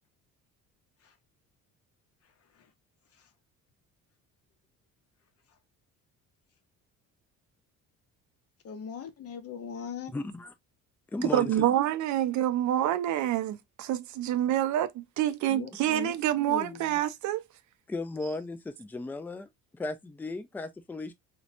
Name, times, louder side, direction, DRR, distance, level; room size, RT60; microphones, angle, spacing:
voice 1, 8.6-10.1 15.5-16.1 16.5-16.8, left 6 dB, 45° left, 0.7 m, -39 dB
voice 2, 10.1-10.5 11.1-11.6 17.9-21.1, left 2 dB, 5° left, 0.3 m, -36 dB
voice 3, 11.3-17.4, right 12 dB, 60° right, 0.5 m, -27 dB
2.8 x 2.2 x 2.5 m
supercardioid pair, 85°, 33 cm